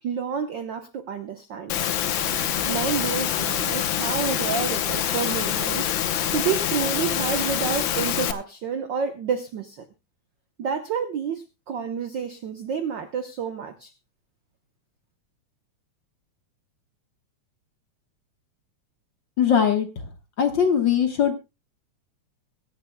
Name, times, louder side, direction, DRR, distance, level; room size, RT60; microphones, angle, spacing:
voice 1, 0.0-1.9 2.6-5.9 6.3-9.9 10.6-13.9, right 7 dB, 80° right, 8 dB, 1.0 m, -29 dB
Engine / Mechanisms, 1.7-8.3, left 10 dB, 80° left, 1.0 m, -25 dB
voice 2, 19.4-19.9 20.4-21.4, left 8 dB, 55° left, 6 dB, 1.5 m, -20 dB
23.0 x 10.5 x 2.2 m, 0.26 s
omnidirectional pair, 3.4 m